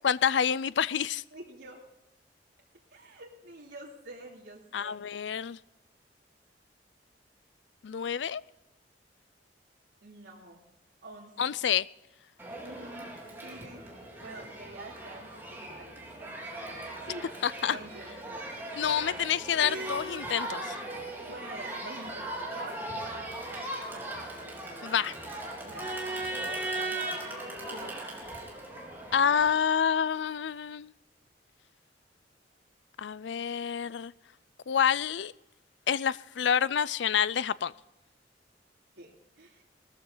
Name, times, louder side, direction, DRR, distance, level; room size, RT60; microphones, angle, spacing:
voice 1, 0.0-1.2 4.7-5.6 7.8-8.4 11.4-11.9 17.4-17.8 18.8-20.8 24.8-25.1 29.1-30.9 33.0-34.1 34.7-35.3 35.9-37.7, left 8 dB, 75° left, 0.4 m, -28 dB
voice 2, 1.3-1.8 2.9-5.0 10.0-10.6 11.0-11.5 12.6-13.1 13.4-13.8 14.2-17.2 17.7-18.7 19.0-19.2 21.1-22.8 23.0-25.1 25.6-26.2 27.7-28.0 38.9-39.6, right 2 dB, 85° right, 2.9 m, -47 dB
Crowd, 12.4-29.5, right 1 dB, 10° right, 3.6 m, -38 dB
19.0 x 14.0 x 3.9 m
head